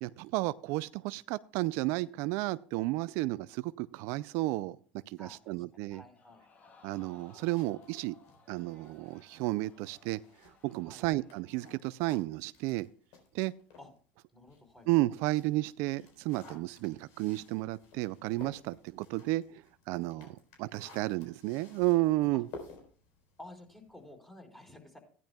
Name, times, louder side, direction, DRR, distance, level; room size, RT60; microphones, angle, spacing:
voice 1, 0.0-4.8 5.1-6.0 6.8-8.2 8.5-10.2 10.6-12.9 13.3-13.5 14.9-20.3 20.6-22.5, right 19 dB, 65° right, 16 dB, 0.4 m, -32 dB
voice 2, 5.2-6.5 10.8-11.1 13.8-13.9 14.3-14.9 20.1-20.4 22.3-22.4 23.4-25.0, left 1 dB, 5° left, 2 dB, 4.3 m, -52 dB
Crowd, 6.1-11.6 12.0-12.1, left 4 dB, 35° left, 2.7 m, -61 dB
sound 1, 7.2-14.0 14.4-24.1, left 4 dB, 65° left, 4.3 m, -56 dB
15.5 x 10.5 x 2.3 m, 0.43 s
hypercardioid pair, 90°, 5 cm